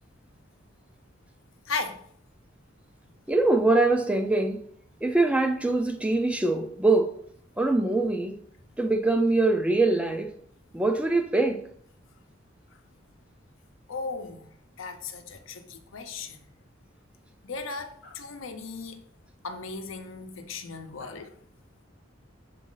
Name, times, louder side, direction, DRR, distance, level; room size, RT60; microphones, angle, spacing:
voice 1, 1.7-2.0 13.9-14.5 14.8-16.4 17.4-19.0 19.4-21.3, left 4 dB, 80° left, 0.7 m, -36 dB
voice 2, 3.3-4.6 5.0-7.2 7.6-8.4 8.8-10.3 10.7-11.7, right 2 dB, 5° right, 0.4 m, -23 dB
6.3 x 4.1 x 3.8 m
head